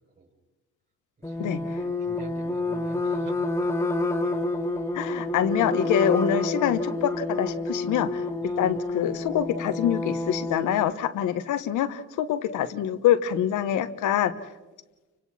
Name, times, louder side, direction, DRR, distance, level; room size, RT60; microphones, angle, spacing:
sound 1, 1.2-10.8, left 2 dB, 10° left, 1.7 m, -28 dB
voice 1, 1.2-3.5 4.2-4.4 8.4-8.6, right 3 dB, 35° right, 1 dB, 5.8 m, -46 dB
voice 2, 4.9-8.2 8.6-14.3, left 10 dB, 85° left, 10 dB, 1.2 m, -25 dB
29.5 x 25.0 x 4.3 m, 1.1 s
cardioid pair, 90°, 30 cm